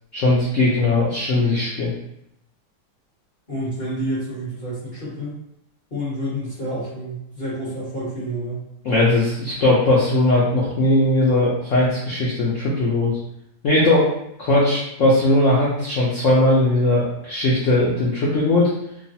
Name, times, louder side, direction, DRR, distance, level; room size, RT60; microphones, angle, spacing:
voice 1, 0.1-1.9 8.8-13.2 13.6-14.1 14.4-18.7, left 2 dB, 70° left, -6 dB, 0.7 m, -19 dB
voice 2, 3.5-5.3 5.9-8.7, equal, 35° left, -9 dB, 1.1 m, -29 dB
3.1 x 2.3 x 2.7 m, 0.78 s
omnidirectional pair, 2.0 m